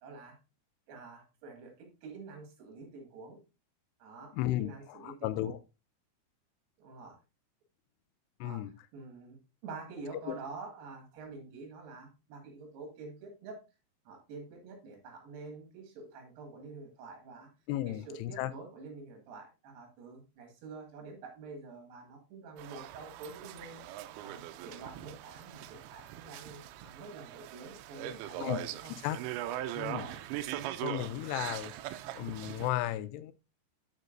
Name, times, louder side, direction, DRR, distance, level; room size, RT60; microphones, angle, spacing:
voice 1, 0.0-0.4 0.9-3.4 4.0-5.5 6.8-7.2 8.4-8.6 8.9-13.6 14.1-17.5 17.9-23.8 24.2-28.9 29.8-30.2, right 3 dB, 70° right, 4.0 m, -47 dB
voice 2, 4.3-5.6 8.4-8.7 10.3-10.4 17.7-18.5 28.4-28.6 29.0-29.2 29.8-30.0 30.8-31.7 32.2-33.3, left 14 dB, 85° left, 2.6 m, -34 dB
sound 1, 22.6-32.7, right 13 dB, 85° right, 2.2 m, -41 dB
11.0 x 5.2 x 2.5 m
omnidirectional pair, 5.0 m